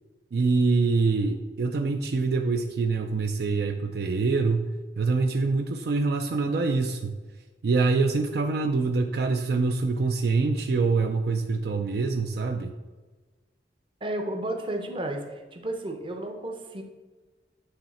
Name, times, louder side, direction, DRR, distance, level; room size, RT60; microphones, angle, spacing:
voice 1, 0.3-7.2 7.6-12.7, right 4 dB, 60° right, 5 dB, 0.4 m, -25 dB
voice 2, 14.0-16.8, right 1 dB, 30° right, 4 dB, 0.7 m, -32 dB
8.9 x 3.1 x 4.2 m, 1.3 s
head